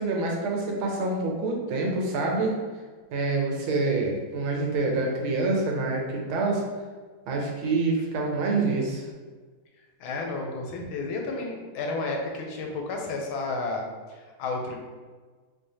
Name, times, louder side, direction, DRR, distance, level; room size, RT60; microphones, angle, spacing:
voice 1, 0.0-2.5 3.1-6.6 7.3-9.0, right 3 dB, 85° right, 0 dB, 1.5 m, -26 dB
voice 2, 10.0-14.8, left 3 dB, 85° left, 1 dB, 1.5 m, -32 dB
3.9 x 3.1 x 2.7 m, 1.4 s
omnidirectional pair, 2.2 m